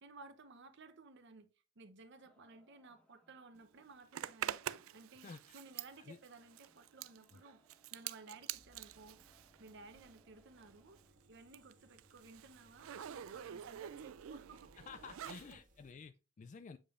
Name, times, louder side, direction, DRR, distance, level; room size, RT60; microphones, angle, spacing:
voice 1, 0.0-1.5 1.8-7.6 7.9-9.2 9.6-14.8 15.2-15.6, right 3 dB, 60° right, 0.8 m, -57 dB
sound 1, 2.2-11.1, equal, 5° left, 1.2 m, -74 dB
Zipper (clothing), 4.1-10.3 10.6-15.5, right 11 dB, 85° right, 0.4 m, -47 dB
voice 2, 5.2-5.6 6.0-6.2 7.3-7.4 14.8-16.8, left 5 dB, 40° left, 0.3 m, -52 dB
sound 2, 8.5-15.9, equal, 40° right, 1.6 m, -68 dB
8.7 x 5.1 x 2.5 m
head